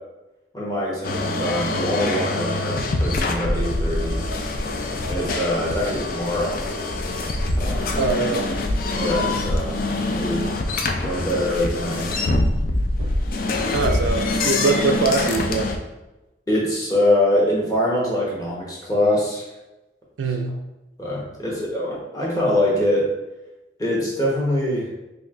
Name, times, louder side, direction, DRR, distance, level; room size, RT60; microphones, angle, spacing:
voice 1, 0.5-4.2 5.1-6.6 7.6-7.9 8.9-9.8 10.1-10.5 11.0-12.2 16.5-19.4 21.0-23.1 23.8-24.9, left 1 dB, 20° left, -5 dB, 1.0 m, -23 dB
sound 1, 1.0-15.8, left 2 dB, 45° left, 0.4 m, -24 dB
voice 2, 8.0-8.5 13.0-13.2 13.7-15.7 20.2-20.6, right 3 dB, 80° right, 6 dB, 0.4 m, -23 dB
5.2 x 2.7 x 2.4 m, 1.0 s
head